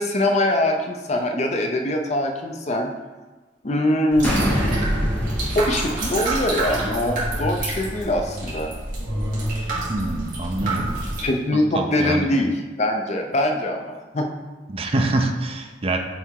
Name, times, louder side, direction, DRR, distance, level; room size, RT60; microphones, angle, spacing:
voice 1, 0.0-2.9 3.6-4.3 5.5-8.7 11.2-12.5 12.8-14.3, left 1 dB, 35° left, 3 dB, 0.6 m, -23 dB
sound 1, 4.1-11.2, right 2 dB, 50° right, 2.1 m, -27 dB
sound 2, 4.2-6.8, equal, 10° left, 1.6 m, -25 dB
voice 2, 9.9-11.0 11.5-12.3 14.7-16.0, right 2 dB, 30° right, 4 dB, 0.6 m, -25 dB
7.3 x 3.4 x 4.7 m, 1.2 s
head